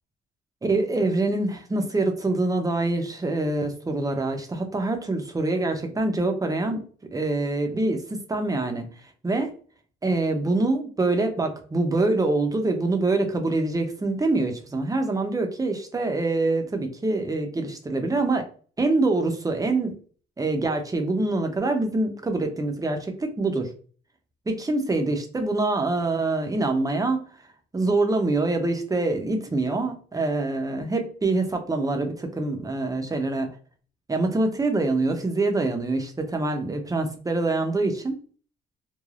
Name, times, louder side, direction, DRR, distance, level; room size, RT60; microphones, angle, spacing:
voice 1, 0.6-6.9 7.1-8.9 9.2-9.5 10.0-18.5 18.8-20.0 20.4-23.7 24.5-27.2 27.7-33.5 34.1-38.2, right 2 dB, 15° right, 5 dB, 0.7 m, -25 dB
3.2 x 2.2 x 2.4 m, 0.41 s
cardioid pair, 90°, 20 cm